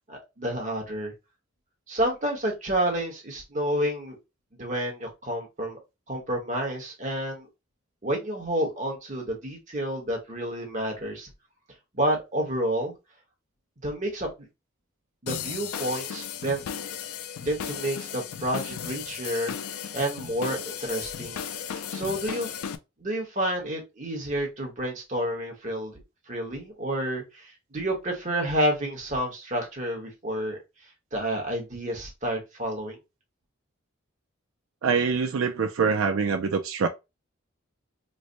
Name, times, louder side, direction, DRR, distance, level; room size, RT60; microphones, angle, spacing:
voice 1, 0.1-1.1 1.9-4.2 4.5-5.8 6.1-7.5 8.0-11.3 11.9-12.9 13.8-14.3 15.2-16.8 17.4-21.4 21.9-22.6 23.0-26.0 26.3-30.6 31.1-33.0, right 1 dB, 35° right, 1.1 m, -29 dB
sound 1, 15.3-22.8, left 8 dB, 90° left, 0.4 m, -35 dB
voice 2, 34.8-36.9, right 5 dB, 70° right, 0.4 m, -24 dB
3.2 x 2.1 x 3.8 m
head